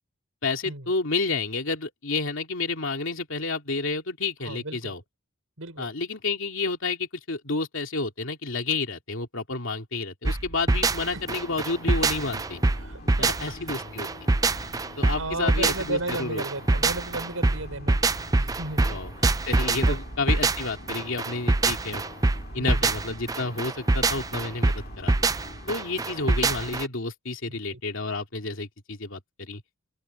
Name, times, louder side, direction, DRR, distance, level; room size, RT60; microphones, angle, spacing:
voice 1, 0.4-5.0 5.8-12.6 13.2-14.1 15.0-16.5 18.8-19.1 19.4-22.0 22.5-25.1 25.7-29.6, left 3 dB, 65° left, 2.8 m, -30 dB
voice 2, 4.4-4.9 5.6-5.9 11.1-11.3 12.8-13.5 14.5-18.0 18.4-19.0 19.8-20.0 22.6-22.9 27.5-27.8, right 2 dB, 80° right, 6.0 m, -35 dB
sound 1, 10.3-26.9, right 3 dB, 15° right, 0.5 m, -24 dB
sound 2, 11.0-26.4, left 2 dB, 45° left, 2.5 m, -46 dB
head